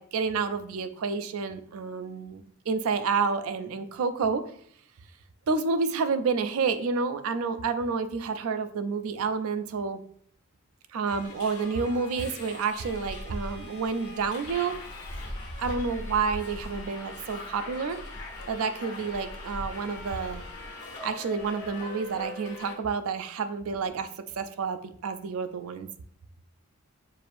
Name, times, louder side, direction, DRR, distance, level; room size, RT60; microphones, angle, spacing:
voice 1, 0.0-4.4 5.5-10.0 10.9-14.8 15.6-18.0 18.5-20.4 21.0-24.1 24.4-25.9, right 5 dB, 75° right, 10 dB, 0.4 m, -29 dB
Subway metro underground, 11.1-22.7, left 1 dB, 85° left, 1.2 m, -40 dB
6.6 x 2.5 x 2.5 m, 0.63 s
head